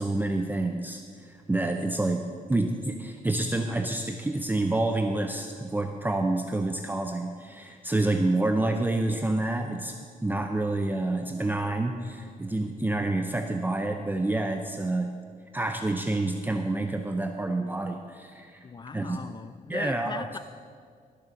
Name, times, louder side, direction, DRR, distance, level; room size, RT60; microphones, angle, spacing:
voice 1, 0.0-15.1 15.5-18.7 18.9-19.2 19.7-20.2, right 2 dB, 10° right, 5 dB, 0.6 m, -28 dB
voice 2, 18.6-20.4, left 5 dB, 30° left, 13 dB, 0.4 m, -39 dB
14.0 x 6.8 x 6.4 m, 2.1 s
cardioid pair, 95°, 15 cm